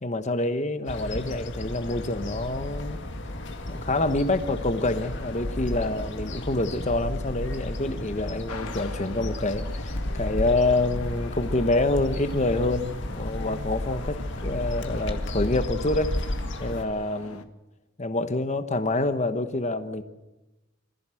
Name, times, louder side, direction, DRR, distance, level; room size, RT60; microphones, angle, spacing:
voice 1, 0.0-3.0 3.7-16.1 16.6-17.5 18.0-20.0, left 2 dB, 30° left, 10 dB, 1.1 m, -27 dB
sound 1, 0.9-16.9, left 1 dB, 55° left, 2.1 m, -33 dB
sound 2, 8.5-17.4, left 3 dB, 85° left, 1.5 m, -43 dB
25.5 x 15.0 x 7.7 m, 1.0 s
head